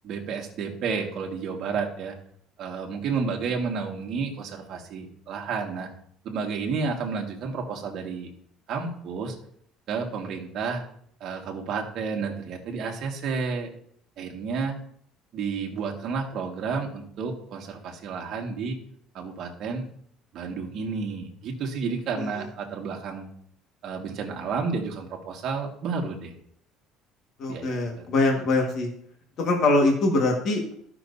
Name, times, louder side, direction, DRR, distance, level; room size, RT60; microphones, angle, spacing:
voice 1, 0.0-2.1 2.6-5.9 6.2-8.3 8.7-9.3 9.9-10.9 11.2-13.7 14.2-14.8 15.3-18.8 19.1-19.9 20.3-23.3 23.8-26.3 27.5-27.7 27.9-28.1 28.4-28.5, right 5 dB, 45° right, 1 dB, 1.7 m, -31 dB
voice 2, 27.4-28.9 29.4-30.7, left 2 dB, 40° left, 1 dB, 1.6 m, -23 dB
14.5 x 6.0 x 2.7 m, 0.66 s
cardioid pair, 170°, 0 cm